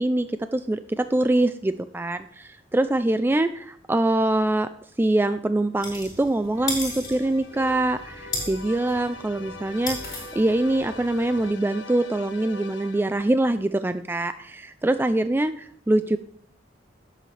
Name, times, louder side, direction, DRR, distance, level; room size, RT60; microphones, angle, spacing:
voice 1, 0.0-4.7 5.0-16.2, right 1 dB, 10° right, 11 dB, 0.3 m, -24 dB
sound 1, 5.8-11.5, left 2 dB, 20° left, 5.4 m, -36 dB
sound 2, 6.5-13.4, left 2 dB, 80° left, 1.4 m, -42 dB
17.5 x 7.6 x 3.2 m, 0.63 s
head